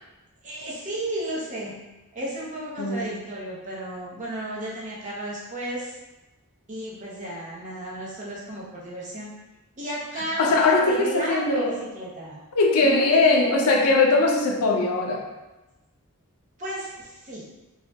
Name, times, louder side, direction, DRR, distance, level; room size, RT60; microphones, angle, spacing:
voice 1, 0.4-1.8 2.1-5.9 6.7-9.3 9.8-12.4 12.8-13.2 16.6-17.4, right 1 dB, 35° right, -6 dB, 0.7 m, -33 dB
voice 2, 2.8-3.2 10.4-11.8 12.5-15.2, left 3 dB, 80° left, 1 dB, 0.5 m, -20 dB
3.2 x 2.2 x 2.7 m, 1.1 s
head